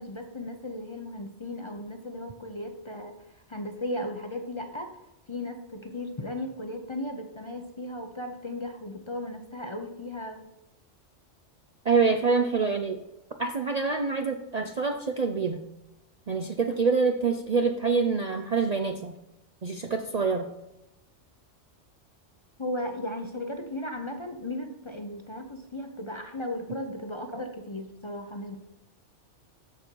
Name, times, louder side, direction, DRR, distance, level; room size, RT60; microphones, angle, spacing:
voice 1, 0.0-3.1 3.5-4.9 5.3-10.4 22.6-28.6, left 1 dB, 30° left, 5 dB, 0.7 m, -36 dB
voice 2, 11.8-13.0 13.4-15.6 16.3-19.1 19.6-20.4, right 4 dB, 45° right, 5 dB, 0.5 m, -26 dB
13.0 x 5.2 x 4.6 m, 0.90 s
omnidirectional pair, 1.2 m